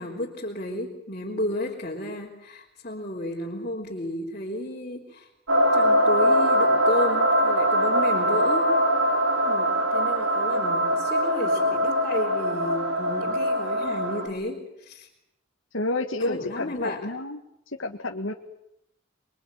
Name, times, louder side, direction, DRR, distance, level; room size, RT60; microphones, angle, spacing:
voice 1, 0.0-5.3 5.7-8.7 9.0-9.2 9.4-15.1 16.3-17.1, left 1 dB, 40° left, -2 dB, 3.8 m, -32 dB
sound 1, 5.5-14.3, equal, 80° right, 5.8 m, -22 dB
voice 2, 15.7-17.4 17.8-18.3, left 2 dB, 70° left, 3 dB, 1.9 m, -29 dB
26.0 x 23.5 x 9.2 m, 0.81 s
head